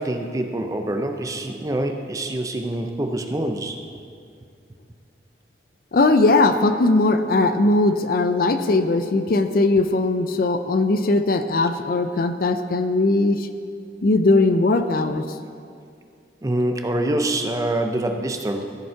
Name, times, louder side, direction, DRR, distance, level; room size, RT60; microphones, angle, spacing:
voice 1, 0.0-3.8 16.4-18.6, right 1 dB, 20° right, 5 dB, 0.5 m, -25 dB
voice 2, 5.9-13.5 14.0-15.4, left 2 dB, 55° left, 9 dB, 0.5 m, -19 dB
14.5 x 5.3 x 4.6 m, 2.3 s
head